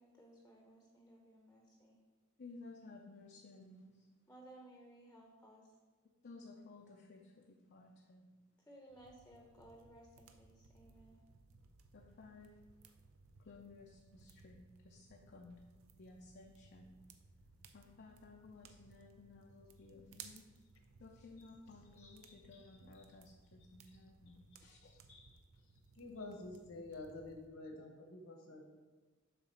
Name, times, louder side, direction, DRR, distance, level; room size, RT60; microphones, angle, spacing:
voice 1, 0.0-2.0 4.3-5.7 8.6-11.2, right 1 dB, 10° left, 0 dB, 0.8 m, -59 dB
voice 2, 2.4-4.0 6.2-8.2 11.9-12.5 13.4-15.6 16.0-16.9 17.7-20.4 21.0-25.4, left 3 dB, 55° left, 1 dB, 0.6 m, -57 dB
sound 1, 8.9-27.5, right 5 dB, 80° right, 0.6 m, -62 dB
voice 3, 25.9-28.7, left 2 dB, 75° left, 2 dB, 1.1 m, -49 dB
7.3 x 3.9 x 5.7 m, 1.3 s
head